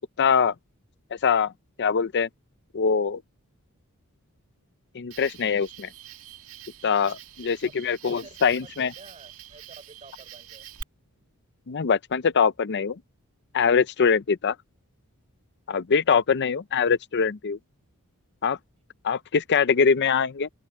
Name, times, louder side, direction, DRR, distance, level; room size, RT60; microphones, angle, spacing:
voice 1, 0.2-0.5 1.2-1.5 1.8-2.3 2.7-3.2 4.9-5.9 6.8-8.9 11.7-13.0 13.5-14.6 15.7-17.6 18.4-18.6 19.0-20.5, left 6 dB, 50° left, 0.5 m, -23 dB
Cricket, 5.1-10.8, right 8 dB, 70° right, 1.8 m, -46 dB
voice 2, 7.6-10.7, right 3 dB, 30° right, 5.7 m, -50 dB
open air
head